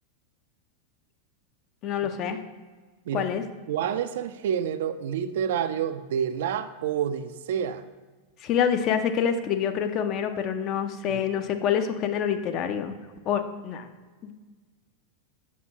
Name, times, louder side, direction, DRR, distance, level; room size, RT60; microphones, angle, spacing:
voice 1, 1.8-2.4 3.1-3.4 8.4-12.9 13.3-13.9 14.2-14.3, left 8 dB, 35° left, 8 dB, 0.5 m, -26 dB
voice 2, 3.7-7.8 11.1-11.2, right 8 dB, 55° right, 11 dB, 0.4 m, -28 dB
7.2 x 5.7 x 2.9 m, 1.4 s
figure-of-eight pair, 90°, 0 cm